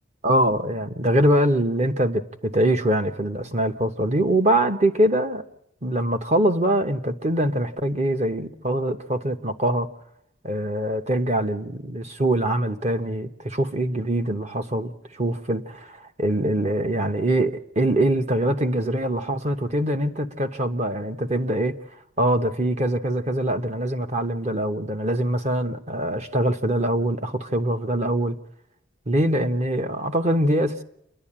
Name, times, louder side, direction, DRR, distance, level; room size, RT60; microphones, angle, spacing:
voice 1, 0.2-5.4 5.8-9.9 10.4-21.8 22.2-28.4 29.1-30.8, right 1 dB, 35° right, 0.9 m, -23 dB
28.0 x 11.0 x 8.7 m
head